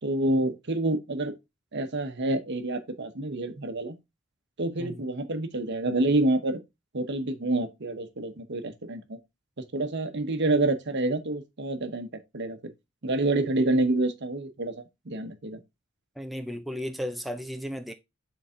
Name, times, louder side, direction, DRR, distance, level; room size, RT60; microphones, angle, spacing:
voice 1, 0.0-1.3 1.7-3.9 4.6-6.6 6.9-9.2 9.7-12.1 12.3-12.7 13.0-14.7 15.1-15.6, right 2 dB, 60° right, 1.0 m, -27 dB
voice 2, 16.2-17.9, equal, ahead, 0.4 m, -34 dB
6.8 x 4.0 x 3.6 m
head